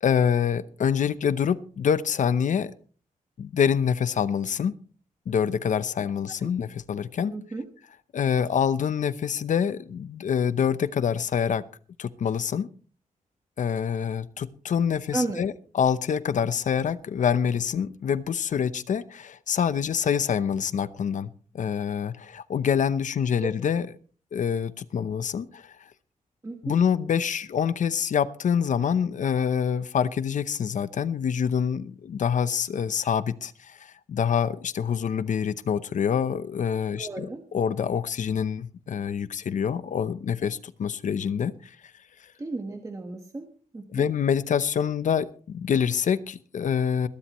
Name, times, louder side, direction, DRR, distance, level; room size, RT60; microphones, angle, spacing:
voice 1, 0.0-2.7 3.4-4.7 5.3-7.3 8.1-11.6 12.0-12.7 13.6-23.9 24.3-25.8 26.6-41.8 43.9-47.1, left 7 dB, 65° left, 0.7 m, -26 dB
voice 2, 7.3-7.6 15.1-15.4 23.4-23.5 26.4-26.8 37.0-37.4 42.4-43.5 43.7-44.1, right 2 dB, 20° right, 1.4 m, -33 dB
20.5 x 13.0 x 3.1 m
wide cardioid pair, 165°, 14 cm